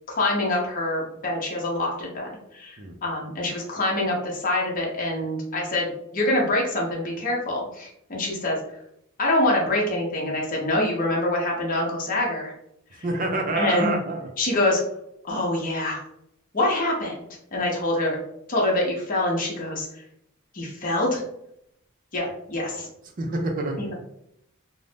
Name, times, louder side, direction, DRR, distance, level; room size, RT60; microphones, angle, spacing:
voice 1, 0.2-8.6 9.2-12.5 13.6-13.9 14.4-14.8 15.2-16.0 16.5-18.2 18.5-20.0 20.5-21.2 22.1-22.9 23.8-23.9, left 1 dB, 40° left, -2 dB, 0.7 m, -25 dB
voice 2, 13.0-14.3 22.7-22.8 23.2-23.9, right 2 dB, 40° right, 2 dB, 0.4 m, -27 dB
2.5 x 2.1 x 3.3 m, 0.76 s
head